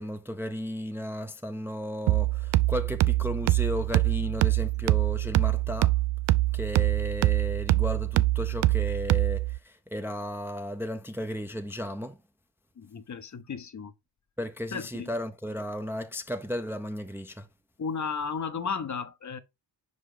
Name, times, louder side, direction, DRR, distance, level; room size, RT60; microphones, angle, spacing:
voice 1, 0.0-5.9 6.5-12.2 14.4-17.5, equal, 5° right, 0.5 m, -34 dB
sound 1, 2.1-9.6, right 17 dB, 75° right, 0.5 m, -24 dB
voice 2, 12.8-13.9 14.7-15.1 17.8-19.4, left 5 dB, 40° left, 0.7 m, -34 dB
5.4 x 5.0 x 3.7 m
cardioid pair, 100°, 46 cm